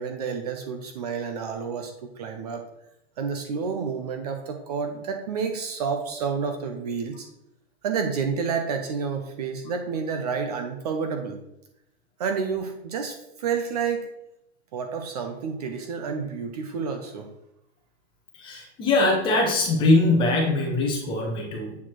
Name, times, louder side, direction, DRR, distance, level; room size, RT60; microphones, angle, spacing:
voice 1, 0.0-2.6 3.2-7.3 7.8-11.4 12.2-14.1 14.7-17.3, right 6 dB, 35° right, 5 dB, 0.8 m, -29 dB
voice 2, 18.4-21.8, left 2 dB, 15° left, -1 dB, 1.4 m, -22 dB
8.3 x 4.3 x 4.5 m, 0.84 s
hypercardioid pair, 165°, 33 cm